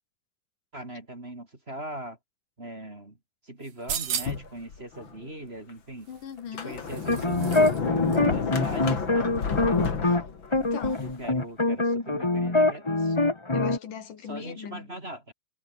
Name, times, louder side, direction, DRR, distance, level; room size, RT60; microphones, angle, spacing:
voice 1, 0.7-2.2 2.6-3.2 3.4-6.1 6.5-7.8 8.2-9.3 11.0-13.3 14.2-15.3, right 1 dB, 20° right, 3.2 m, -40 dB
sound 1, 3.6-4.6 6.1-7.8 8.1-8.2, right 9 dB, 85° right, 4.0 m, -35 dB
Sliding door, 4.2-5.1 5.7-5.8 6.4-11.2, left 5 dB, 40° left, 3.2 m, -30 dB
voice 2, 6.1-6.8 10.0-10.2 10.5-11.1 13.5-14.9, left 8 dB, 85° left, 4.2 m, -39 dB
sound 2, 6.9-10.2 10.5-13.8, left 2 dB, 20° left, 0.8 m, -24 dB
omnidirectional pair, 3.6 m